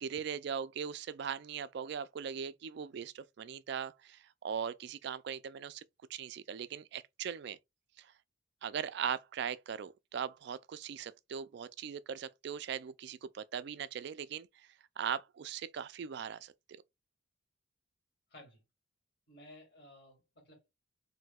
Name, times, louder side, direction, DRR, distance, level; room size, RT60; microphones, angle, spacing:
voice 1, 0.0-5.8 6.1-7.6 8.0-8.1 8.6-14.5 15.0-16.5, right 7 dB, 55° right, 0.3 m, -39 dB
voice 2, 18.3-18.6 19.3-20.7, left 1 dB, 50° left, 2.1 m, -56 dB
6.0 x 2.7 x 2.3 m
head